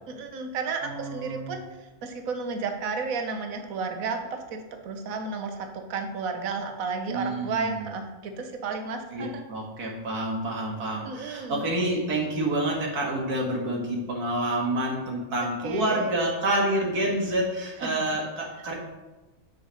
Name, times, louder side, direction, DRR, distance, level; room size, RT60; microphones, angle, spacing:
voice 1, 0.1-1.6 2.0-9.4 11.0-11.6 15.6-16.1 17.8-17.9, right 4 dB, 70° right, 5 dB, 1.3 m, -32 dB
voice 2, 0.8-1.6 7.1-7.9 9.1-18.7, right 1 dB, 85° right, -1 dB, 2.3 m, -28 dB
6.4 x 6.2 x 6.3 m, 1.1 s
omnidirectional pair, 1.6 m